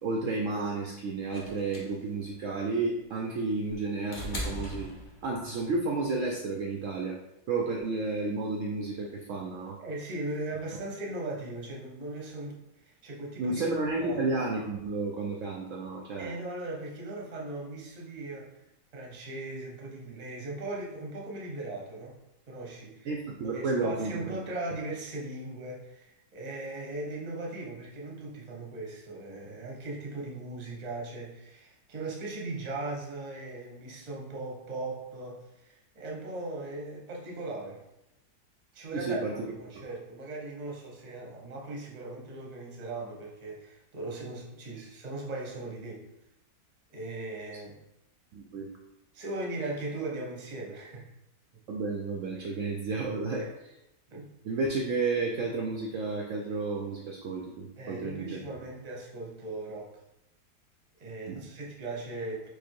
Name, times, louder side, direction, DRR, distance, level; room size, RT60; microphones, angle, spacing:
voice 1, 0.0-4.9 5.2-7.2 7.5-9.8 13.4-16.3 23.0-24.4 38.9-39.3 48.3-48.7 51.7-53.4 54.4-58.7 61.3-61.4, right 3 dB, 80° right, 0 dB, 0.7 m, -32 dB
sound 1, 1.3-5.6 6.8-6.9, left 1 dB, 35° left, 0.8 m, -39 dB
voice 2, 9.8-13.6 14.0-14.2 16.2-18.6 18.9-22.1 22.5-23.1 23.4-37.8 38.7-46.0 46.9-47.8 49.1-51.1 52.3-52.5 53.3-53.5 54.1-54.3 57.8-59.9 61.0-62.5, right 2 dB, 35° right, -2 dB, 0.6 m, -38 dB
4.9 x 2.0 x 4.5 m, 0.88 s
omnidirectional pair, 1.9 m